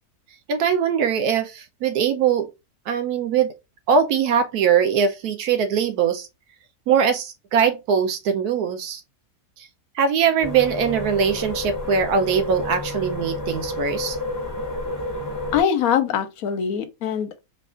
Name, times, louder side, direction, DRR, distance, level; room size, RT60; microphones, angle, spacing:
voice 1, 0.5-2.5 2.9-3.5 3.9-6.3 6.9-9.0 9.6-9.7 9.9-14.2, right 7 dB, 80° right, 1.1 m, -21 dB
sound 1, 10.4-15.6, left 2 dB, 15° left, 1.3 m, -30 dB
voice 2, 15.5-17.4, left 8 dB, 70° left, 1.2 m, -23 dB
4.6 x 2.4 x 3.6 m
omnidirectional pair, 1.6 m